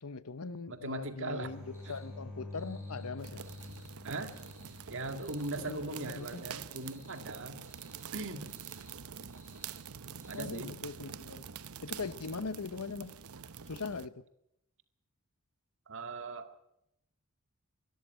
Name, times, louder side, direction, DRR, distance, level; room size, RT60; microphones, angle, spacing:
voice 1, 0.0-3.4 5.7-6.4 10.3-11.4 11.8-13.1 13.7-14.1, left 4 dB, 80° left, 1.0 m, -41 dB
voice 2, 0.7-1.5 1.8-2.0 4.0-4.3 4.9-7.6 8.1-8.5 10.3-10.8 15.9-16.6, right 2 dB, 60° right, 2.1 m, -39 dB
sound 1, 1.4-6.0 9.3-9.8, left 2 dB, 5° right, 7.0 m, -48 dB
sound 2, 1.7-2.1 2.5-3.1 3.4-3.9 4.2-4.8 5.1-5.8 6.0-6.4 6.7-7.2 7.6-8.1 8.4-8.9 9.3-9.9 10.2-10.4, left 1 dB, 10° left, 5.4 m, -62 dB
sound 3, 3.2-14.1, right 7 dB, 80° right, 0.9 m, -46 dB
24.0 x 13.5 x 9.3 m
head